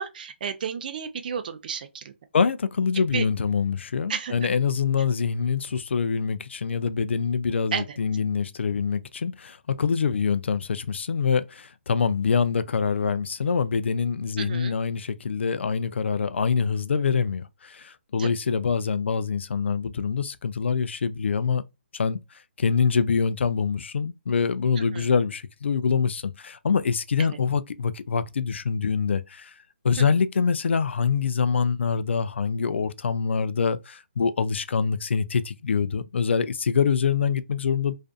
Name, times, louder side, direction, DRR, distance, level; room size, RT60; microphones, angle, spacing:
voice 1, 0.0-2.1 2.9-3.3 4.1-4.3 7.7-8.0 14.4-14.7 18.2-18.3 24.9-25.1 30.0-30.1, right 7 dB, 45° right, 0.5 m, -32 dB
voice 2, 2.3-21.6 21.9-22.2 22.6-29.5 29.8-37.9, left 6 dB, 75° left, 0.3 m, -25 dB
2.5 x 2.4 x 2.3 m
hypercardioid pair, 155°, 6 cm